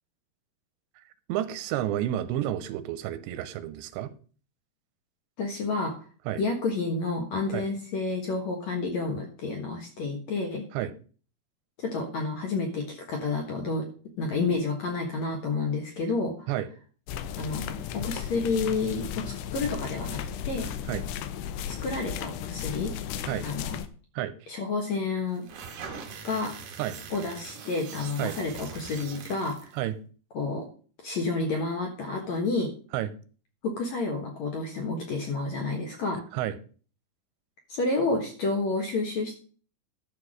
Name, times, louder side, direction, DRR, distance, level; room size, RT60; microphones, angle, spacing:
voice 1, 1.3-4.1 6.3-6.4 7.5-7.7 10.7-10.9 16.5-16.7 20.9-21.0 23.2-23.5 24.2-24.3 26.8-27.0 28.2-28.4 29.7-30.0 32.9-33.1 36.3-36.6, right 12 dB, 90° right, 13 dB, 3.1 m, -30 dB
voice 2, 5.4-5.9 6.4-10.6 11.8-13.9 14.2-16.3 17.3-20.2 20.5-20.7 21.7-22.9 23.4-23.8 24.5-25.4 26.2-26.5 27.1-29.7 30.3-30.6 31.0-32.7 33.6-36.2 37.7-39.4, left 3 dB, 60° left, 2 dB, 1.9 m, -30 dB
sound 1, 17.1-23.9, left 9 dB, 80° left, 2.8 m, -35 dB
sound 2, 25.3-29.8, right 6 dB, 75° right, 1.4 m, -42 dB
12.0 x 4.7 x 6.4 m, 0.40 s
omnidirectional pair, 5.0 m